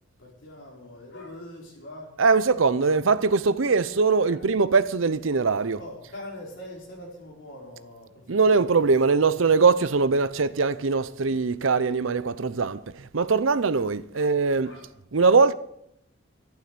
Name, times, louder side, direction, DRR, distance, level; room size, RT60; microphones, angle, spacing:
voice 1, 0.2-2.1 2.8-2.9 4.2-4.4 5.8-9.4 14.1-14.3 14.6-14.9, left 1 dB, 70° left, 5.2 m, -43 dB
voice 2, 2.2-5.8 8.3-14.7 15.1-15.6, right 4 dB, 85° right, 0.7 m, -22 dB
12.0 x 11.5 x 6.9 m
head